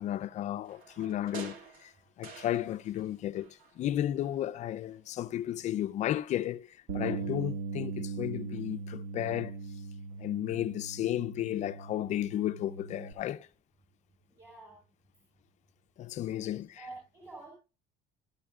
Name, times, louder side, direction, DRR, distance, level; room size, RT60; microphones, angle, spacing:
voice 1, 0.0-1.9 2.2-9.5 10.2-13.5 16.0-16.8, left 12 dB, 45° left, 0.5 m, -33 dB
sound 1, 0.6-3.1 3.3-4.4 4.8-4.9, right 5 dB, 55° right, 2.3 m, -48 dB
Bass guitar, 6.9-13.1, right 5 dB, 80° right, 1.6 m, -39 dB
voice 2, 14.3-14.8 16.4-17.5, right 3 dB, 15° right, 4.4 m, -49 dB
15.0 x 13.0 x 2.4 m
cardioid pair, 140°, 17 cm